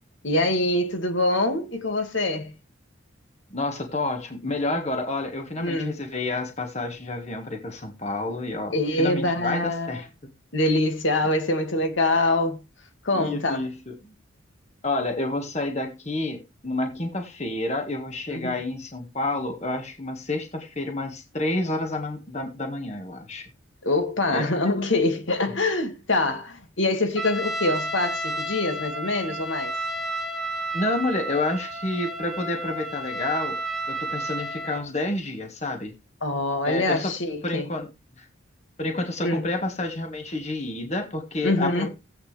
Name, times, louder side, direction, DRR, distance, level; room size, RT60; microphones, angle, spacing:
voice 1, 0.2-2.5 5.6-6.0 8.7-10.0 10.5-12.6 13.0-13.6 18.3-18.5 23.8-29.7 36.2-37.7 39.2-39.5 41.4-41.9, left 2 dB, 70° left, 2.3 m, -24 dB
voice 2, 3.5-10.3 13.1-14.1 14.8-23.4 24.3-24.5 30.7-33.6 33.9-35.9 36.6-37.1 37.4-37.9 38.2-38.3 38.8-41.9, left 2 dB, 35° left, 1.7 m, -29 dB
Trumpet, 27.2-34.8, right 1 dB, ahead, 1.3 m, -31 dB
16.5 x 8.5 x 3.4 m
head